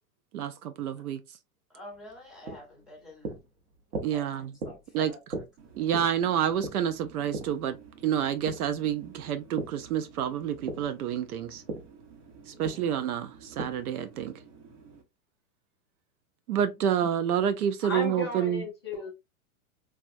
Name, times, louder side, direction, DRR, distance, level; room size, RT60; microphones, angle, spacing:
voice 1, 0.3-1.2 4.0-4.5 4.9-5.1 5.8-7.8 8.0-11.6 12.5-14.4 16.5-18.6, right 9 dB, 80° right, 0.6 m, -28 dB
voice 2, 1.7-3.4 4.1-4.3 4.6-5.4 12.4-12.8, left 1 dB, ahead, 0.7 m, -48 dB
sound 1, 1.9-9.8 10.2-14.0, right 3 dB, 35° right, 0.8 m, -40 dB
sound 2, 5.6-15.0, right 5 dB, 55° right, 1.0 m, -52 dB
voice 3, 17.8-19.1, left 3 dB, 20° left, 0.3 m, -34 dB
3.4 x 2.3 x 2.5 m
hypercardioid pair, 155°, 44 cm